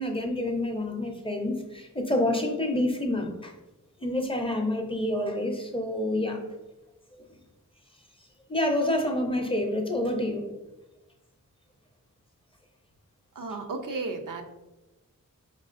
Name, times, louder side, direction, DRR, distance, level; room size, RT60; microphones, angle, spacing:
voice 1, 0.0-3.5 4.0-6.4 7.1-7.2 8.5-10.4, left 1 dB, 15° left, 3 dB, 0.5 m, -28 dB
voice 2, 13.3-14.4, right 3 dB, 70° right, 5 dB, 0.5 m, -33 dB
4.6 x 3.7 x 2.5 m, 1.0 s
wide cardioid pair, 85°, 33 cm